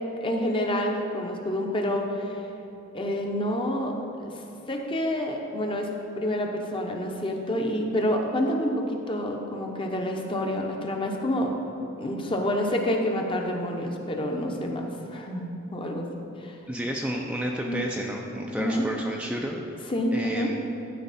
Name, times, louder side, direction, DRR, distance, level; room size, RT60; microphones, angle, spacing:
voice 1, 0.2-2.4 2.9-3.9 4.2-4.3 4.7-5.9 6.2-11.5 12.0-16.1 16.4-16.6 17.6-17.9 18.6-18.8 19.9-20.5, left 1 dB, 25° left, 2 dB, 0.8 m, -28 dB
voice 2, 16.7-19.6 20.1-20.6, equal, 5° right, -1 dB, 0.4 m, -31 dB
12.0 x 5.3 x 4.2 m, 3.0 s
head